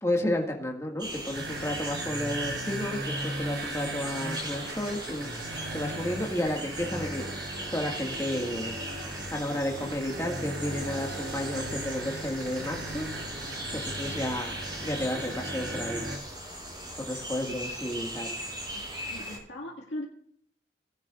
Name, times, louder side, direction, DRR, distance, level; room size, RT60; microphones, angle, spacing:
voice 1, 0.0-5.3 5.7-8.8 9.3-13.1 13.7-16.0 17.1-18.3, left 1 dB, 15° left, 1 dB, 2.0 m, -32 dB
sound 1, 1.0-19.4, right 1 dB, 25° right, 4.9 m, -39 dB
sound 2, 1.3-16.2, right 1 dB, 65° right, 1.8 m, -37 dB
voice 2, 18.7-20.0, left 1 dB, 80° left, -3 dB, 2.3 m, -40 dB
19.0 x 10.5 x 2.5 m, 0.64 s
head